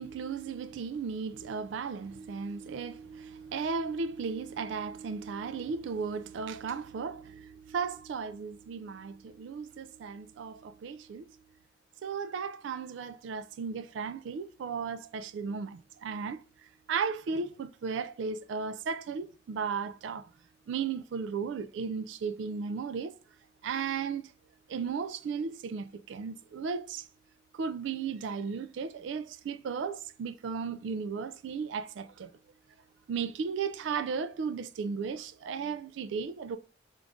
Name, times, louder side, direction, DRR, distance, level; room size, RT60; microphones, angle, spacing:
voice 1, 0.0-11.4 12.0-20.3 20.7-23.2 23.6-24.3 24.7-27.1 27.5-32.3 33.1-36.6, right 5 dB, 75° right, 0.3 m, -35 dB
5.1 x 2.4 x 3.4 m
head